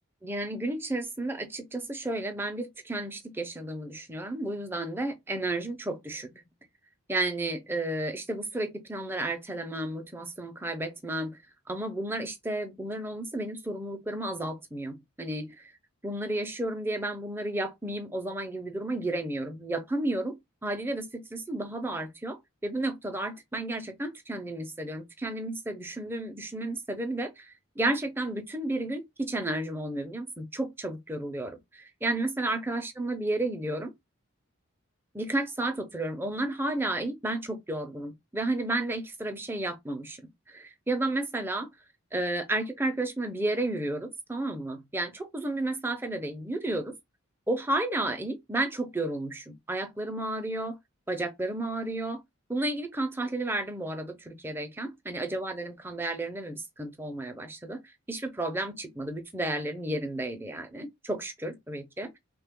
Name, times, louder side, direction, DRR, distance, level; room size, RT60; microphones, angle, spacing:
voice 1, 0.2-6.4 7.1-11.4 11.7-15.4 16.0-33.9 35.1-40.2 40.5-41.7 42.1-46.9 47.5-50.8 51.1-52.2 52.5-62.2, right 2 dB, 10° right, 0.5 m, -32 dB
3.1 x 2.2 x 3.5 m
head